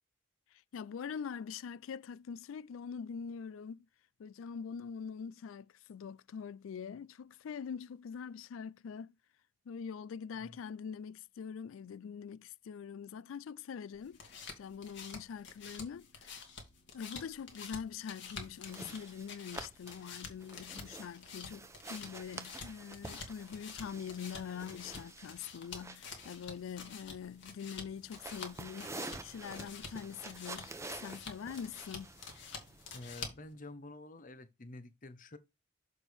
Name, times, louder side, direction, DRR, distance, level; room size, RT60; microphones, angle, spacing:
voice 1, 0.5-3.9 4.2-9.1 9.7-14.2 14.6-16.4 16.9-28.9 29.2-32.1, left 7 dB, 80° left, 0.4 m, -44 dB
sound 1, 13.9-33.5, left 5 dB, 65° left, 2.3 m, -49 dB
sound 2, 18.7-33.3, right 2 dB, 15° right, 0.8 m, -49 dB
voice 2, 32.9-35.4, left 2 dB, 45° left, 1.0 m, -49 dB
7.0 x 6.2 x 3.5 m
head